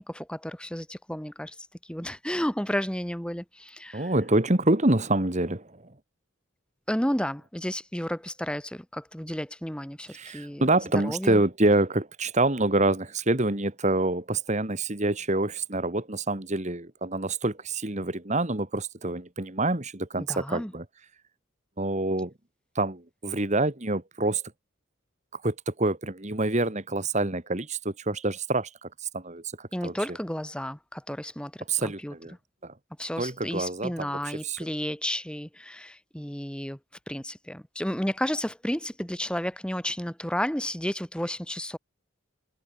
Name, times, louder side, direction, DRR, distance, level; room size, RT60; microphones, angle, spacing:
voice 1, 0.0-1.6 1.9-4.1 6.9-10.6 11.0-11.4 20.2-20.7 29.7-31.5 32.0-32.1 33.0-36.8 37.1-41.8, equal, 5° left, 1.8 m, -32 dB
voice 2, 3.9-6.0 10.1-20.9 21.8-22.3 22.8-24.4 25.3-30.2 31.7-32.4 32.6-32.7 33.2-34.6, right 2 dB, 35° right, 1.8 m, -27 dB
head